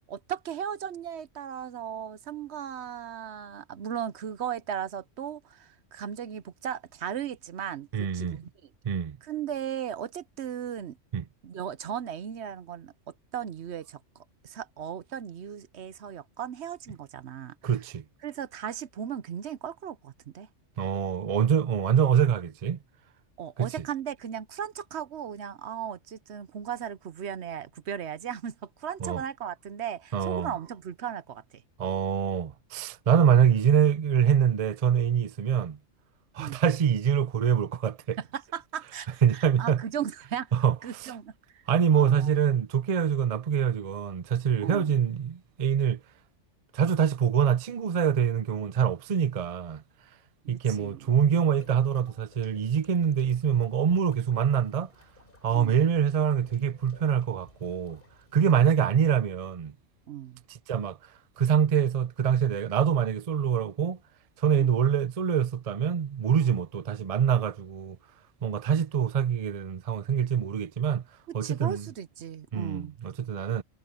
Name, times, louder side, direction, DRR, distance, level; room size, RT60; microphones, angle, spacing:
voice 1, 0.0-8.7 9.2-11.0 11.4-14.0 14.4-17.8 18.2-20.5 23.4-31.6 36.4-36.6 38.2-40.5 40.8-41.6 41.9-42.3 44.6-45.0 50.4-51.4 55.5-55.9 58.4-58.6 60.1-60.4 64.5-64.7 66.4-66.5 71.3-73.0, right 9 dB, 60° right, 1.0 m, -37 dB
voice 2, 7.9-8.4 8.8-9.2 11.1-11.2 17.6-18.0 20.8-22.8 23.6-23.7 29.0-29.2 30.1-30.5 31.8-35.8 36.3-38.2 39.2-39.8 40.5-41.1 41.7-46.0 46.7-49.8 50.5-54.9 55.4-58.0 58.3-59.7 60.7-61.0 61.4-64.0 64.4-68.0 68.4-71.0 71.3-71.9 72.5-73.6, right 8 dB, 45° right, 0.4 m, -25 dB
sound 1, 51.6-58.9, left 1 dB, 45° left, 3.7 m, -56 dB
omnidirectional pair, 1.3 m